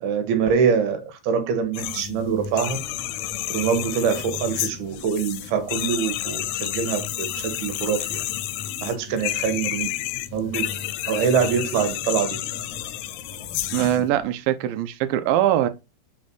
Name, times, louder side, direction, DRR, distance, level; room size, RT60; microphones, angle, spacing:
voice 1, 0.0-2.8 3.5-8.2 8.8-9.9 10.3-10.7 11.1-12.4 13.8-13.9, right 6 dB, 70° right, 2.9 m, -24 dB
sound 1, 1.7-2.1 2.5-14.0, left 15 dB, 80° left, 2.5 m, -30 dB
sound 2, 1.7-14.3, left 4 dB, 45° left, 3.0 m, -40 dB
voice 2, 13.7-15.7, right 12 dB, 85° right, 2.1 m, -22 dB
6.0 x 4.3 x 6.1 m
omnidirectional pair, 4.9 m